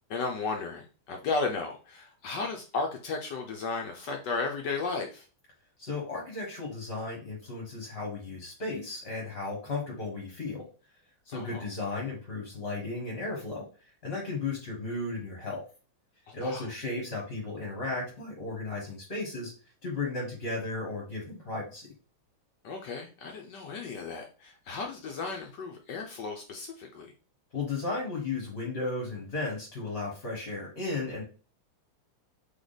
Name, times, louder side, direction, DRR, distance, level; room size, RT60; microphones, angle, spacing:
voice 1, 0.1-5.3 11.3-11.7 16.3-16.7 22.6-27.1, left 4 dB, 70° left, 3 dB, 1.0 m, -34 dB
voice 2, 5.8-10.6 11.3-13.6 14.0-15.6 16.3-19.5 19.8-21.9 27.5-31.2, left 3 dB, 35° left, -2 dB, 1.2 m, -35 dB
3.7 x 3.3 x 3.9 m, 0.36 s
omnidirectional pair, 2.4 m